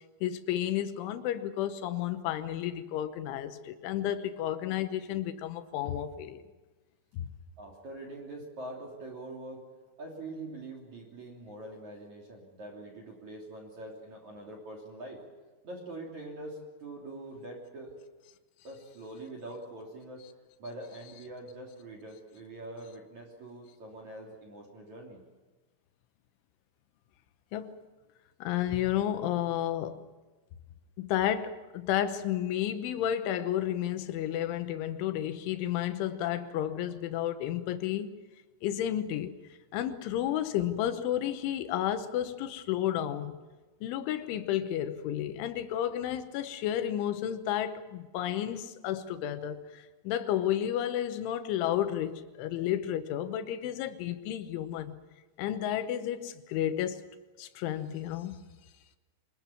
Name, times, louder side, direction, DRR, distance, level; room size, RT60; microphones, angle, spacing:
voice 1, 0.2-6.4 7.1-7.3 27.5-27.7 28.4-30.0 31.0-38.1 38.6-39.3 39.7-43.4 43.8-55.0 55.4-57.1 57.4-58.4, left 11 dB, 75° left, 3.4 m, -32 dB
voice 2, 7.6-9.6 10.0-15.2 15.6-18.0 18.6-20.2 20.6-25.2, right 2 dB, 40° right, 3.7 m, -44 dB
25.0 x 21.0 x 7.1 m
omnidirectional pair, 5.8 m